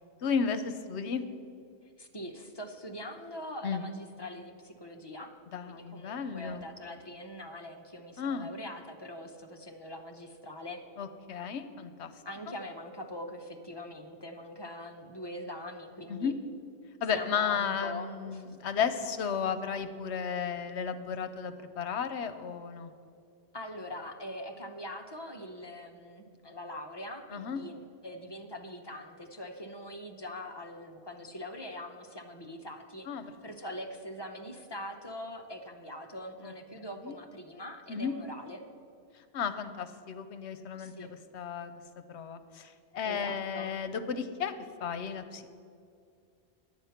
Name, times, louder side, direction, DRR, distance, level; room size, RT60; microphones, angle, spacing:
voice 1, 0.2-1.2 3.6-3.8 5.5-6.6 8.2-8.5 11.0-12.1 16.1-16.3 17.0-22.9 27.3-27.6 33.1-33.2 37.0-37.1 37.9-38.1 39.3-40.9 41.3-41.7 42.1-44.5 44.8-45.5, left 6 dB, 75° left, 10 dB, 1.0 m, -33 dB
voice 2, 2.0-5.3 5.7-10.8 12.2-16.3 17.1-18.6 23.5-38.6 40.8-41.1 43.0-43.7, left 1 dB, 25° left, 3 dB, 0.7 m, -43 dB
10.5 x 8.8 x 5.7 m, 2.4 s
omnidirectional pair, 1.2 m